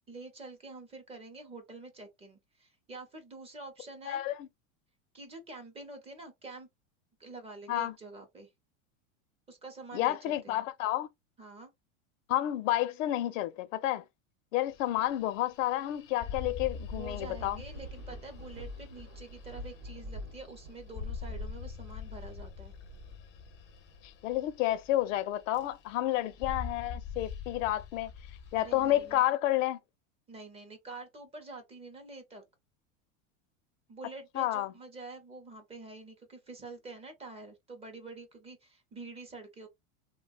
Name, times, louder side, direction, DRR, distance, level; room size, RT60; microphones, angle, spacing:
voice 1, 0.1-4.2 5.1-6.7 7.2-8.5 9.5-10.6 11.4-11.7 16.9-22.8 28.6-29.2 30.3-32.4 33.9-39.7, right 3 dB, 15° right, 0.6 m, -47 dB
voice 2, 4.1-4.5 7.7-7.9 9.9-11.1 12.3-14.0 14.5-17.6 24.0-28.1 28.5-29.8 34.4-34.7, left 14 dB, 75° left, 0.6 m, -30 dB
sound 1, 14.7-25.2 25.5-26.0 26.3-29.2, left 5 dB, 30° left, 0.5 m, -44 dB
Thunder / Rain, 16.7-25.3 25.9-27.2, equal, 45° right, 0.9 m, -48 dB
3.2 x 2.2 x 2.4 m
supercardioid pair, 145°, 39 cm